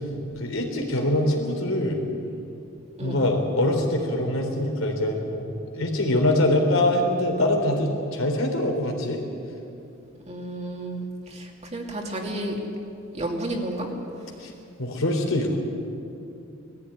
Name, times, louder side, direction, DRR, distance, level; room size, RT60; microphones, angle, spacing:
voice 1, 0.4-2.0 3.0-9.2 14.4-14.5 14.8-15.6, left 1 dB, 80° left, 2 dB, 3.4 m, -24 dB
voice 2, 10.3-12.6 13.1-13.9, right 1 dB, 35° right, 0 dB, 2.6 m, -31 dB
19.5 x 14.5 x 9.6 m, 2.7 s
head